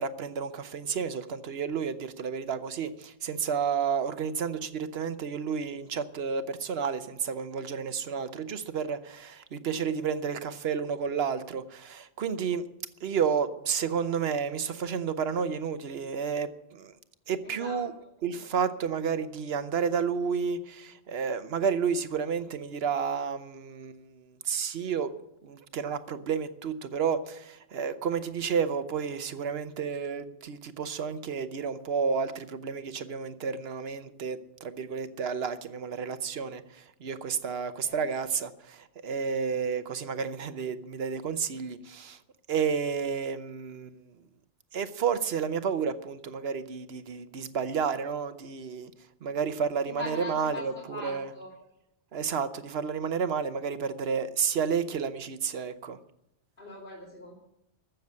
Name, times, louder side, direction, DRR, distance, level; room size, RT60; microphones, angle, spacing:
voice 1, 0.0-12.6 13.0-16.9 17.3-17.9 18.2-25.1 25.4-42.2 42.5-44.1 44.7-48.9 49.2-51.3 52.1-56.0, right 6 dB, 65° right, 1.1 m, -31 dB
voice 2, 17.4-18.1 37.8-38.1 49.8-51.5 56.6-57.3, left 2 dB, 50° left, 2.9 m, -41 dB
14.5 x 7.1 x 9.5 m
omnidirectional pair, 1.1 m